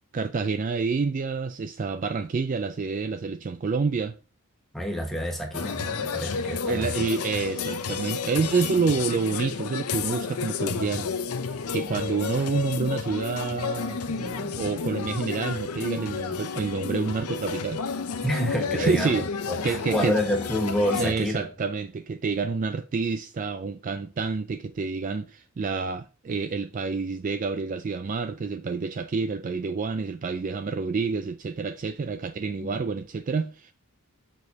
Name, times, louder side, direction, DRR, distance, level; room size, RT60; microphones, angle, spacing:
voice 1, 0.1-4.1 6.7-17.8 18.7-19.3 19.6-20.2 21.0-33.7, right 4 dB, 35° right, 0.3 m, -28 dB
voice 2, 4.7-7.1 18.2-19.1 19.5-21.5 32.6-32.8, left 1 dB, ahead, 1.5 m, -28 dB
sound 1, 5.5-21.1, left 5 dB, 80° left, 0.6 m, -31 dB
6.8 x 6.3 x 2.8 m
head